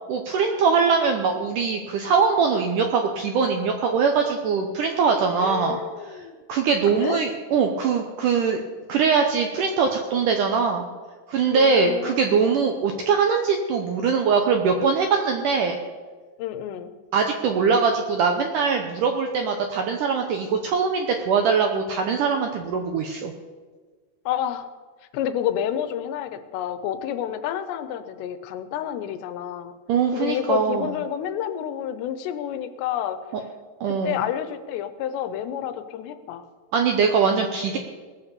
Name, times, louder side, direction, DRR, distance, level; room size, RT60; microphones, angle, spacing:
voice 1, 0.1-5.8 6.5-8.6 8.9-10.8 11.3-15.8 17.1-23.3 29.9-30.9 33.8-34.2 36.7-37.8, right 5 dB, 80° right, 4 dB, 1.8 m, -22 dB
voice 2, 5.4-6.4 6.9-7.2 11.5-12.3 16.4-16.9 24.3-24.7 25.1-29.7 30.1-33.2 34.0-36.4, left 10 dB, 85° left, 11 dB, 3.0 m, -29 dB
19.5 x 7.1 x 6.8 m, 1.5 s
omnidirectional pair, 4.9 m